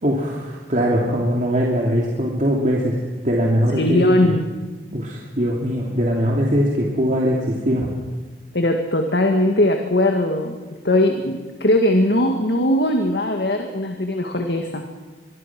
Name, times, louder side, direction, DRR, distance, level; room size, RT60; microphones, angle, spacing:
voice 1, 0.0-3.0 3.2-4.3 4.9-7.9, equal, 45° right, -2 dB, 2.8 m, -21 dB
voice 2, 3.7-4.5 8.5-14.8, left 1 dB, 70° left, 4 dB, 1.9 m, -20 dB
24.0 x 23.0 x 6.1 m, 1.3 s
head